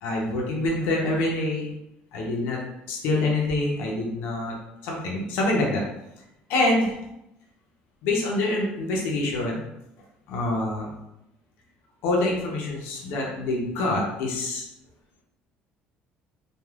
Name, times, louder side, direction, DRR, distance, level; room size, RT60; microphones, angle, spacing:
voice 1, 0.0-1.7 2.1-2.6 2.9-4.5 4.8-5.8 6.5-7.0 8.0-9.7 10.3-10.9 12.0-14.7, left 2 dB, 85° left, -2 dB, 0.7 m, -26 dB
3.3 x 2.3 x 2.3 m, 0.85 s
cardioid pair, 120°, 4 cm